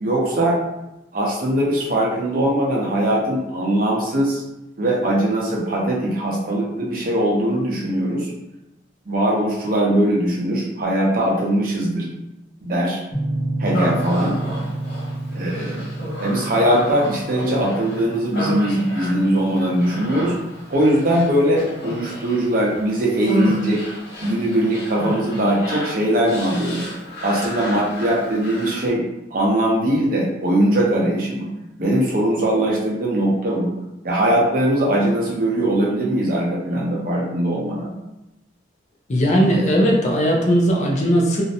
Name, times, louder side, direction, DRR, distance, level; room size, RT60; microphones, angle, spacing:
voice 1, 0.0-0.6 1.1-4.4 4.8-8.3 9.1-12.1 12.6-13.0 13.6-14.4 15.3-15.9 16.2-20.3 20.7-23.9 24.2-26.9 27.2-29.0 29.3-31.5 31.8-33.7 34.0-37.9, right 1 dB, 45° right, -3 dB, 0.6 m, -20 dB
sound 1, 13.1-21.8, right 1 dB, 20° left, 0.8 m, -30 dB
Human voice, 13.7-28.9, equal, 60° left, 0.9 m, -32 dB
voice 2, 39.1-41.4, equal, 35° left, -1 dB, 0.4 m, -18 dB
2.4 x 2.0 x 2.7 m, 0.90 s
head